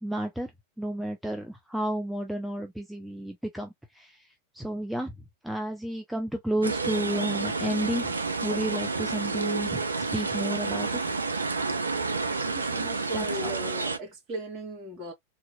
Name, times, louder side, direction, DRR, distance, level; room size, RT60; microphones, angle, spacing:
voice 1, 0.0-0.5 0.8-4.1 4.5-5.1 5.4-8.1 8.4-11.0 13.1-13.5, right 1 dB, ahead, 0.6 m, -31 dB
sound 1, 6.6-14.0, right 4 dB, 75° right, 0.5 m, -30 dB
voice 2, 12.3-15.1, right 1 dB, 35° right, 2.2 m, -37 dB
3.9 x 2.9 x 2.2 m
figure-of-eight pair, 90°, 0 cm